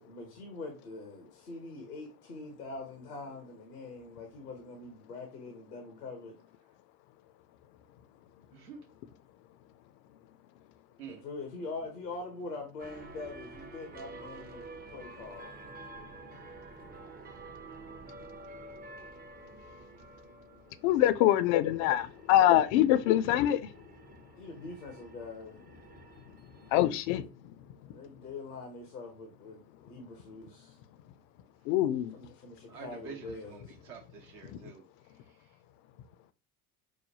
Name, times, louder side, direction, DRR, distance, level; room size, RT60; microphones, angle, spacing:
voice 1, 0.0-6.4 11.1-15.6 19.0-19.1 24.4-25.7 27.8-30.8 32.1-33.7, left 3 dB, 90° left, 0.8 m, -43 dB
voice 2, 8.5-8.9 11.0-11.2 32.7-34.8, right 7 dB, 60° right, 0.9 m, -47 dB
sound 1, 12.8-26.9, right 3 dB, 20° right, 0.6 m, -50 dB
voice 3, 20.8-23.8 26.3-28.0 29.8-29.9 31.6-32.2 34.4-34.6, left 13 dB, 50° left, 0.5 m, -26 dB
4.9 x 2.1 x 2.7 m
figure-of-eight pair, 60°, 46 cm